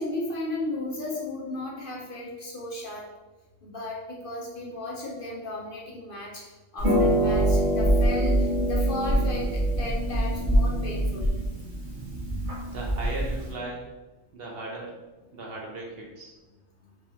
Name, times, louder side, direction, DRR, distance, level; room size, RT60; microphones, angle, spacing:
voice 1, 0.0-3.0 3.6-9.5 9.8-11.4, left 2 dB, 50° left, -4 dB, 0.8 m, -35 dB
Harp, 6.8-13.5, right 1 dB, 40° right, 1.2 m, -24 dB
voice 2, 12.7-13.9 14.3-15.0 15.3-16.3, right 2 dB, 55° right, -2 dB, 0.8 m, -37 dB
4.6 x 3.5 x 2.8 m, 1.1 s
omnidirectional pair, 1.3 m